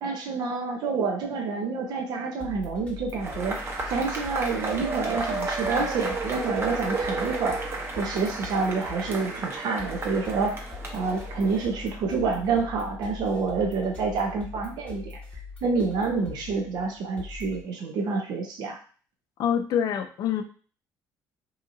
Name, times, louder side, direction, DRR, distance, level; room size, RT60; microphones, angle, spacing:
voice 1, 0.0-3.6 3.9-10.6 10.9-15.2 15.6-18.8, right 4 dB, 70° right, 2 dB, 0.6 m, -28 dB
sound 1, 2.4-17.6, left 4 dB, 15° left, 0.9 m, -42 dB
Cheering / Applause / Crowd, 3.2-11.9, right 3 dB, 35° right, 0.8 m, -32 dB
voice 2, 19.4-20.4, left 8 dB, 65° left, 8 dB, 0.4 m, -25 dB
2.8 x 2.6 x 2.5 m, 0.41 s
supercardioid pair, 75°, 7 cm